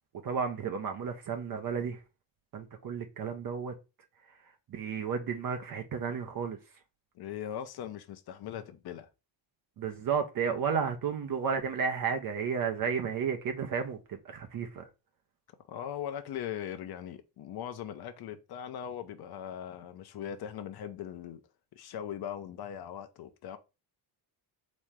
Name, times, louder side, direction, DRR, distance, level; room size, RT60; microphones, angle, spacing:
voice 1, 0.2-2.0 2.5-3.7 4.7-6.6 9.8-14.8, right 6 dB, 50° right, 0.8 m, -32 dB
voice 2, 7.1-9.1 15.7-21.4 21.7-23.6, left 9 dB, 55° left, 0.8 m, -40 dB
4.3 x 3.1 x 3.6 m
cardioid pair, 150°, 44 cm